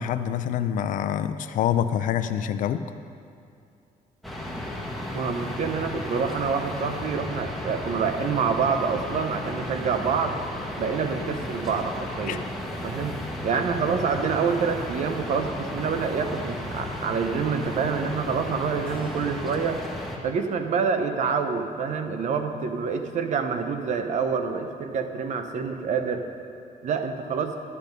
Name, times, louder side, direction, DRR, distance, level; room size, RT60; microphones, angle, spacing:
voice 1, 0.0-2.9 12.3-12.4, left 9 dB, 65° left, 10 dB, 0.5 m, -26 dB
sound 1, 4.2-20.2, left 1 dB, ahead, 1.1 m, -34 dB
voice 2, 5.1-10.4 10.8-12.4 12.8-13.1 13.4-19.8 20.2-26.2 26.8-27.6, right 5 dB, 55° right, 7 dB, 0.8 m, -27 dB
Keyboard (musical), 18.9-21.3 21.9-23.2, right 4 dB, 15° right, 2.4 m, -50 dB
12.0 x 8.3 x 5.4 m, 2.5 s
cardioid pair, 165°, 15 cm